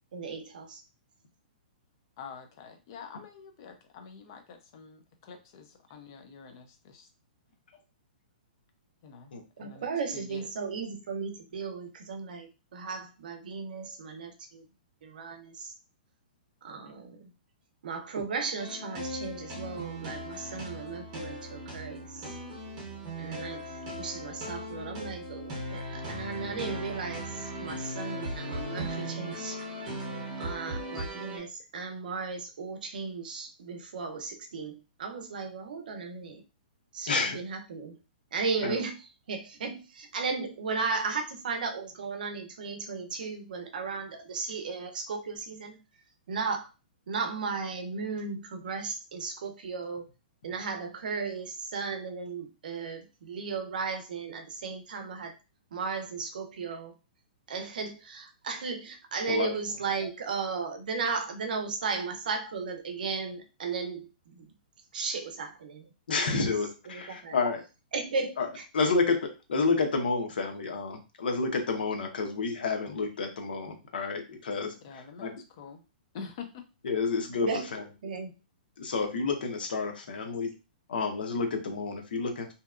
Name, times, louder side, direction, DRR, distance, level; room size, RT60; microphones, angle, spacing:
voice 1, 0.1-0.8 9.6-14.7 15.0-15.7 16.6-17.3 17.8-22.4 23.2-23.7 24.0-29.6 29.8-30.1 30.4-36.4 36.9-38.0 38.3-39.0 39.3-45.8 46.3-46.7 47.1-50.1 50.4-55.4 55.7-56.9 57.5-64.5 64.9-65.8 66.3-66.4 66.9-67.4 67.9-68.6 77.4-77.7 78.0-78.4, right 4 dB, 60° right, 5 dB, 0.6 m, -35 dB
voice 2, 2.2-7.1 9.0-9.3 9.6-9.9 10.1-10.4 74.8-75.8 76.1-76.5, left 6 dB, 30° left, 6 dB, 0.4 m, -46 dB
sound 1, 18.6-31.4, right 1 dB, 20° right, 0.9 m, -38 dB
voice 3, 37.1-37.4 38.6-38.8 59.3-59.5 66.1-67.6 68.4-68.5 68.7-69.2 69.5-75.3 76.8-77.8 78.8-80.5 80.9-82.5, left 4 dB, 75° left, 4 dB, 0.7 m, -30 dB
2.8 x 2.2 x 2.4 m, 0.30 s
hypercardioid pair, 175°, 5 cm